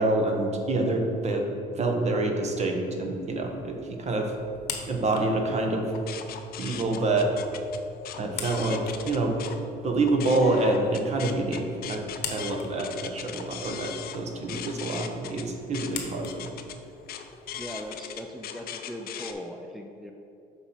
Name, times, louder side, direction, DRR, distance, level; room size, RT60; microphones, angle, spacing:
voice 1, 0.0-1.5 1.8-4.3 4.9-5.9 6.6-7.3 8.2-9.4 9.8-12.0 12.3-16.5, right 2 dB, 40° right, 3 dB, 1.1 m, -27 dB
sound 1, 2.9-18.2, left 6 dB, 85° left, 1.1 m, -44 dB
sound 2, 5.9-9.6 10.0-19.3, left 9 dB, 65° left, 0.6 m, -39 dB
voice 2, 17.5-20.1, equal, ahead, 3 dB, 0.4 m, -39 dB
6.9 x 4.3 x 5.3 m, 2.7 s
cardioid pair, 110°, 17 cm